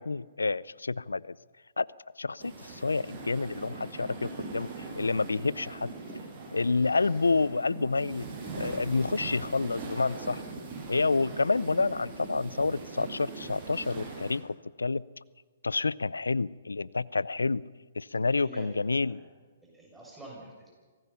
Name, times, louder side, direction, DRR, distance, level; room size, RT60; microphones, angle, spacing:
voice 1, 0.0-1.4 1.8-1.9 2.2-4.7 5.0-5.9 6.5-8.3 8.5-10.4 10.9-15.0 15.6-17.6 18.0-19.2, left 3 dB, 90° left, 21 dB, 0.6 m, -29 dB
sound 1, 2.4-14.4, right 3 dB, 30° right, 8.0 m, -41 dB
voice 2, 18.3-19.3 19.6-20.7, right 2 dB, 5° right, -3 dB, 7.0 m, -48 dB
25.5 x 18.5 x 5.7 m, 1.4 s
hypercardioid pair, 130°, 0 cm